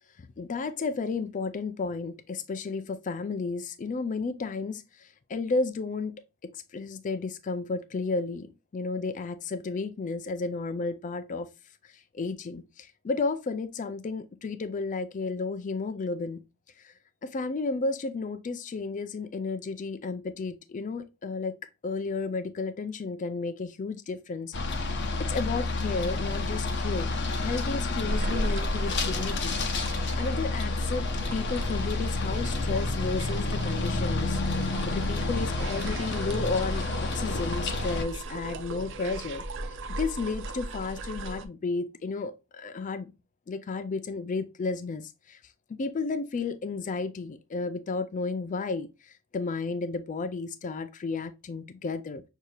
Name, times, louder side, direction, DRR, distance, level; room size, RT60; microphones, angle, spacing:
voice 1, 0.2-6.1 6.4-11.5 11.8-16.4 16.8-16.9 17.2-21.6 21.8-24.9 25.2-39.4 40.0-43.1 43.5-45.4 45.8-52.2, left 4 dB, 40° left, 0.4 m, -33 dB
sound 1, 24.5-38.1, left 3 dB, 55° left, 0.7 m, -29 dB
sound 2, 28.1-41.5, right 1 dB, 60° right, 0.5 m, -37 dB
6.4 x 2.7 x 2.3 m
head